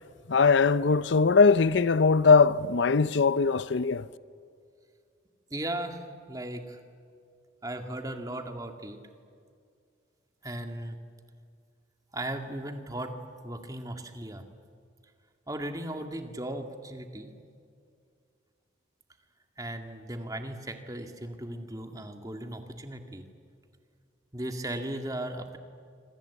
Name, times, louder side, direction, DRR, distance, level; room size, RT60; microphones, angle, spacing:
voice 1, 0.3-4.0, left 4 dB, 70° left, 0.6 m, -21 dB
voice 2, 5.5-6.8 7.6-9.0 10.4-11.0 12.1-13.2 13.4-14.4 15.5-17.3 19.6-23.3 24.3-25.6, right 1 dB, 20° right, 1.9 m, -37 dB
27.0 x 26.0 x 8.3 m
head